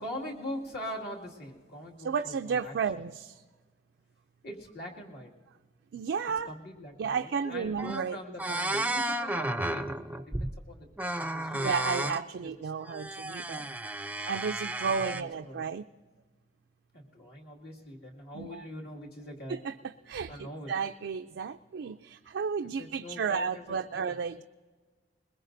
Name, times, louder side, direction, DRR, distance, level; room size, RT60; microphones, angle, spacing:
voice 1, 0.0-2.7 4.4-5.3 6.4-10.9 11.2-11.7 12.4-12.7 15.0-15.7 16.9-19.6 20.3-20.7 22.6-23.6 23.9-24.1, left 1 dB, 65° left, -2 dB, 2.2 m, -42 dB
voice 2, 2.0-3.4 5.9-6.5 7.0-8.2 8.5-8.6 11.5-13.7 14.3-15.9 18.3-18.6 19.5-24.4, right 6 dB, 90° right, 7 dB, 0.4 m, -33 dB
sound 1, 7.4-7.5 7.8-8.1 8.4-10.6 11.0-12.2 12.8-15.2, right 1 dB, 10° right, 0.4 m, -33 dB
21.5 x 20.5 x 2.6 m, 1.4 s
head